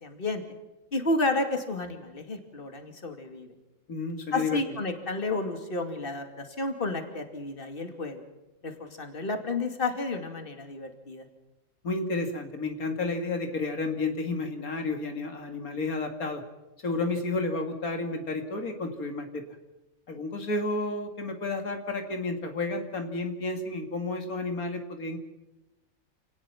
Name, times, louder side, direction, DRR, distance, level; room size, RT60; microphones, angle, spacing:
voice 1, 0.0-0.4 0.9-3.5 4.3-8.2 8.6-11.3, left 2 dB, 40° left, 6 dB, 2.7 m, -31 dB
voice 2, 3.9-4.6 11.8-16.4 16.8-19.4 20.1-25.2, left 3 dB, 80° left, 5 dB, 2.8 m, -31 dB
28.5 x 19.0 x 6.0 m, 1.1 s
omnidirectional pair, 1.5 m